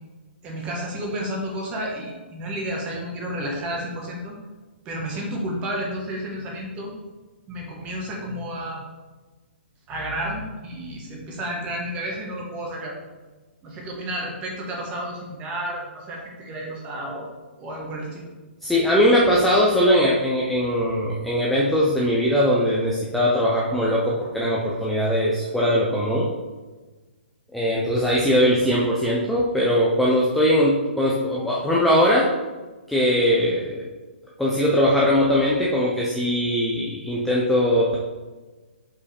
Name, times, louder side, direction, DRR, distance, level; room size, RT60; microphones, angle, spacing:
voice 1, 0.4-4.3 4.8-6.9 7.5-8.8 9.9-12.9 13.6-17.2 17.6-18.3, right 1 dB, 15° right, -1 dB, 1.3 m, -31 dB
voice 2, 18.6-26.3 27.5-32.3 32.9-33.9 34.4-38.0, equal, ahead, -5 dB, 0.5 m, -20 dB
5.2 x 4.8 x 4.2 m, 1.3 s
hypercardioid pair, 160°, 6 cm